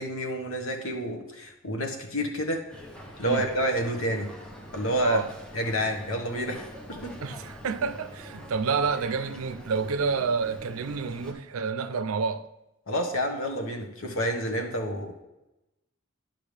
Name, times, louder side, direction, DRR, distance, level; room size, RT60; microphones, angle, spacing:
voice 1, 0.0-2.6 3.2-4.3 4.7-5.2 5.5-7.1 12.9-15.2, equal, 75° left, 1.2 m, -29 dB
Boat Water vehicle, 2.7-11.3, equal, 5° left, 0.9 m, -44 dB
voice 2, 7.2-12.5, right 5 dB, 85° right, 0.5 m, -29 dB
10.5 x 5.8 x 3.3 m
head